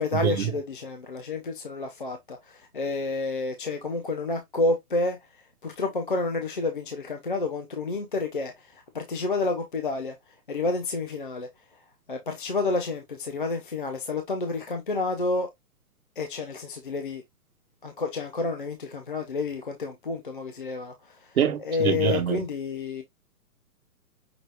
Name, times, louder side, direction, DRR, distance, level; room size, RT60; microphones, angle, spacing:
voice 1, 0.0-5.2 5.6-10.2 10.5-11.5 12.1-15.5 16.2-17.2 17.8-21.3 21.6-23.0, left 3 dB, 35° left, 0.6 m, -29 dB
voice 2, 21.4-22.4, right 8 dB, 65° right, 1.1 m, -25 dB
5.9 x 2.4 x 3.3 m
hypercardioid pair, 175°, 46 cm